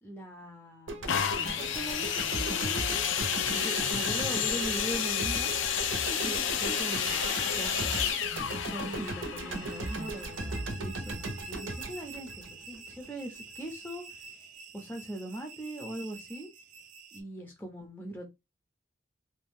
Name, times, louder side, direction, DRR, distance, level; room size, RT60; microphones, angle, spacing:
voice 1, 0.0-3.0 3.5-5.5 6.2-8.0 8.4-14.4 14.7-16.5 17.1-18.3, right 1 dB, 10° left, 0.5 m, -41 dB
sound 1, 0.9-13.1, right 2 dB, 90° right, 0.7 m, -38 dB
sound 2, 1.1-10.8 11.5-11.6, left 8 dB, 80° left, 0.4 m, -31 dB
sound 3, 3.1-17.2, right 7 dB, 40° right, 0.5 m, -45 dB
2.6 x 2.2 x 3.5 m
head